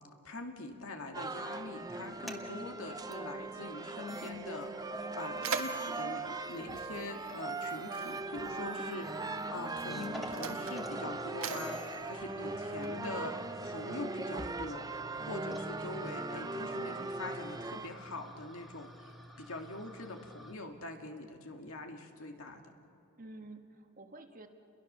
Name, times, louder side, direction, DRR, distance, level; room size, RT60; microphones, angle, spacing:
voice 1, 0.2-13.4 13.6-19.1 19.4-22.7, left 2 dB, 70° left, 4 dB, 2.0 m, -43 dB
sound 1, 1.1-17.9, right 3 dB, 15° right, 0.6 m, -40 dB
sound 2, 2.0-2.4 3.1-3.2 3.8-3.9 4.1-5.3 5.6-20.5, left 1 dB, ahead, 1.7 m, -50 dB
Mechanisms, 4.5-4.6 4.9-7.6 8.6-8.8 9.6-13.2, right 5 dB, 65° right, 1.6 m, -42 dB
voice 2, 8.3-8.7 15.2-15.6 23.2-24.5, right 2 dB, 40° right, 5 dB, 1.6 m, -51 dB
30.0 x 22.0 x 6.7 m, 3.0 s
head